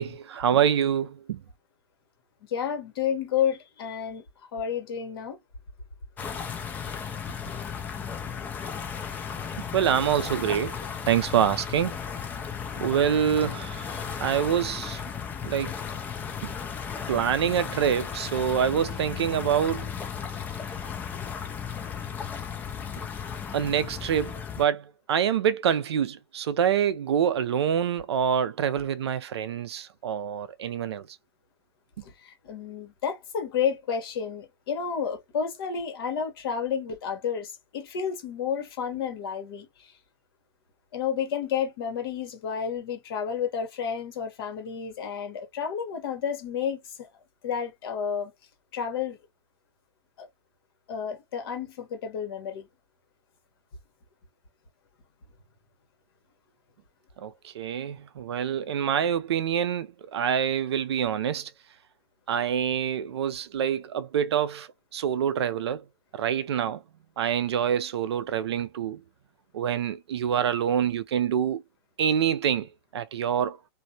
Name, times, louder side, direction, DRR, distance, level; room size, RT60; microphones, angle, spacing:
voice 1, 0.0-1.4 9.6-10.8 11.1-12.0 12.8-15.0 15.4-15.8 16.4-16.5 17.1-19.9 23.5-31.1 57.2-61.5 62.3-65.8 66.1-66.8 67.2-69.0 69.5-71.6 72.0-73.6, right 8 dB, 75° right, 0.5 m, -26 dB
voice 2, 2.5-4.2 4.5-5.4 13.9-14.1 32.2-39.7 40.9-47.1 47.4-48.3 48.7-49.2 50.2-50.3 50.9-52.7, left 7 dB, 60° left, 1.1 m, -31 dB
sound 1, 6.2-24.6, left 7 dB, 10° left, 0.4 m, -35 dB
2.6 x 2.0 x 2.7 m
hypercardioid pair, 145°, 14 cm